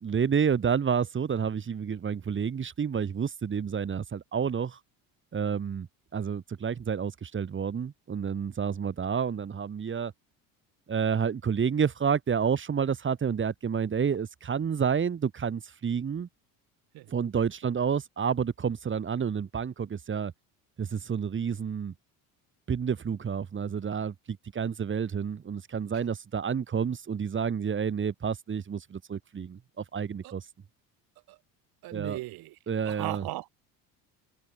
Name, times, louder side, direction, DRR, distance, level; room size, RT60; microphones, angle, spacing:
voice 1, 0.0-4.8 5.3-5.9 6.1-10.1 10.9-16.3 17.1-20.3 20.8-21.9 22.7-30.5 31.9-32.2 32.7-33.2, right 7 dB, 30° right, 2.0 m, -29 dB
voice 2, 31.8-33.5, right 19 dB, 65° right, 1.6 m, -38 dB
supercardioid pair, 100°, 40 cm